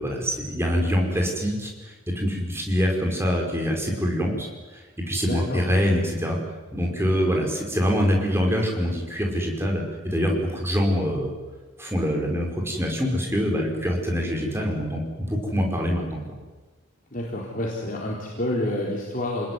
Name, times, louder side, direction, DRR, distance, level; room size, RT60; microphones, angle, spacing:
voice 1, 0.0-6.4 6.7-11.3 11.8-16.2, equal, 10° right, 0 dB, 5.4 m, -25 dB
voice 2, 5.2-5.6 17.1-19.5, left 1 dB, 40° left, -3 dB, 4.3 m, -28 dB
28.5 x 20.5 x 9.8 m, 1.2 s
head